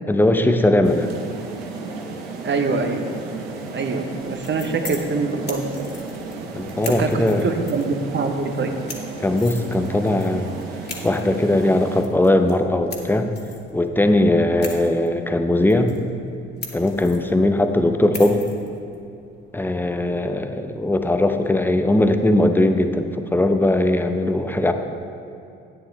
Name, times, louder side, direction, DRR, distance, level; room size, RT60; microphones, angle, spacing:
voice 1, 0.1-1.1 6.5-7.5 9.2-10.5 11.0-13.3 13.7-15.9 16.7-18.5 19.5-24.7, left 1 dB, 5° left, 7 dB, 0.8 m, -19 dB
sound 1, 0.8-12.0, right 3 dB, 85° right, 1.0 m, -34 dB
voice 2, 2.4-3.0 3.7-5.6 6.9-8.7, right 4 dB, 35° right, 5 dB, 1.1 m, -24 dB
sound 2, 4.1-21.0, left 3 dB, 35° left, 2.2 m, -41 dB
12.5 x 9.4 x 3.4 m, 2.7 s
hypercardioid pair, 55°, 31 cm